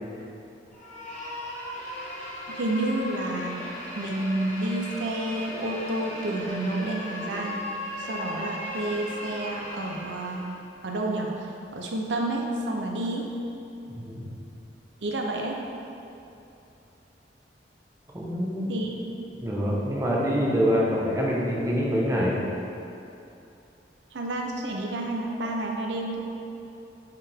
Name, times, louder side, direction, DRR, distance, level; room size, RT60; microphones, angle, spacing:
sound 1, 0.7-10.6, left 1 dB, 45° left, 1.4 m, -37 dB
voice 1, 2.5-7.7 8.0-10.5 10.8-13.3 15.0-15.6 18.7-19.3 24.1-26.2, right 1 dB, 80° right, 0 dB, 0.7 m, -30 dB
voice 2, 13.9-14.4 18.1-18.7 19.4-22.4, equal, 20° right, -5 dB, 1.1 m, -25 dB
6.8 x 5.7 x 3.5 m, 2.8 s
head